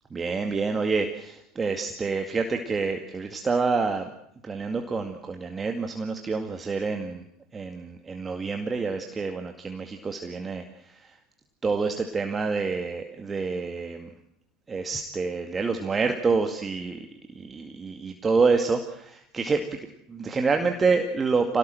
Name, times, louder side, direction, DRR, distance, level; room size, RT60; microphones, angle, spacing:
voice 1, 0.1-4.1 4.4-7.2 7.5-10.6 11.6-14.1 14.7-17.0 17.4-19.8 20.1-21.6, right 4 dB, 20° right, 5 dB, 2.1 m, -27 dB
27.0 x 18.5 x 7.7 m, 0.73 s
figure-of-eight pair, 70°, 0 cm